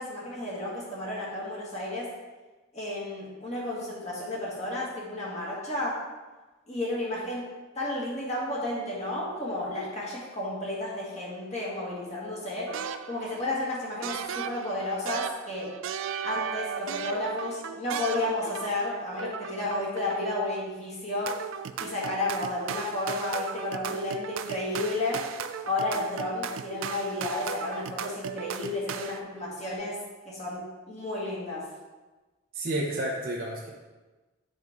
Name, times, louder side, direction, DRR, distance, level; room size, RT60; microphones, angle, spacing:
voice 1, 0.0-2.1 2.7-6.0 6.7-7.5 7.8-12.7 13.1-15.7 16.2-21.3 21.8-25.2 25.6-30.0 30.3-31.6, left 2 dB, 30° left, -5 dB, 1.7 m, -32 dB
sound 1, 12.7-13.5 14.0-18.9 19.2-20.4 21.3-29.2, right 7 dB, 65° right, 0.3 m, -36 dB
voice 2, 32.5-33.7, right 1 dB, 45° right, -4 dB, 0.8 m, -30 dB
7.9 x 5.3 x 3.6 m, 1.2 s
head